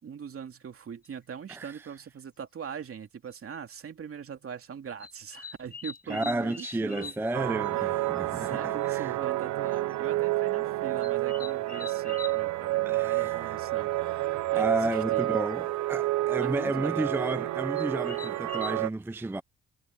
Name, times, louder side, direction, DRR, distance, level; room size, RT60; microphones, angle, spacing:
voice 1, 0.0-7.1 7.7-15.4 16.4-17.1, right 7 dB, 50° right, 2.6 m, -41 dB
sound 1, 1.0-1.1 2.5-2.6 3.3-3.5 5.0-7.3 7.6-7.7 8.0-8.1 8.4-8.5 8.8-8.9 9.7-9.9 11.0-12.4 14.5-14.6 14.8-15.2 17.1-17.2 17.8-18.7, left 5 dB, 30° left, 1.1 m, -43 dB
voice 2, 1.5-1.9 6.1-9.2 12.9-13.6 14.6-19.4, right 2 dB, 5° right, 0.5 m, -32 dB
sound 2, 7.3-18.9, right 17 dB, 70° right, 0.7 m, -29 dB
cardioid pair, 90°, 30 cm